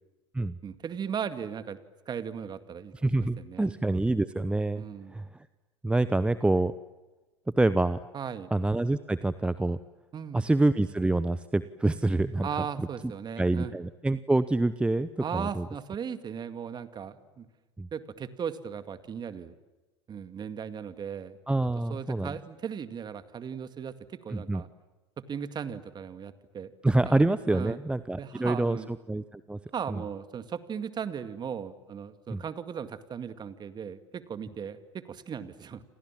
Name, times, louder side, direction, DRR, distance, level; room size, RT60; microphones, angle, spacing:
voice 1, 0.6-1.8 2.1-2.9 3.4-3.7 4.7-5.2 8.1-8.5 10.1-10.5 12.4-13.8 15.2-17.5 17.9-19.5 20.1-21.4 21.9-24.7 25.2-26.7 27.1-27.2 27.5-27.8 28.2-28.9 29.7-35.8, right 7 dB, 30° right, 11 dB, 2.1 m, -37 dB
voice 2, 3.0-4.8 5.1-5.3 5.8-6.7 7.6-8.0 8.5-9.8 10.3-12.5 12.8-12.9 13.4-15.6 17.8-17.9 21.5-22.3 24.3-24.6 26.8-28.8 29.1-29.6 29.9-30.0 32.3-32.4, right 2 dB, 5° right, 15 dB, 0.8 m, -26 dB
29.0 x 26.5 x 7.5 m, 1.2 s
figure-of-eight pair, 80°, 15 cm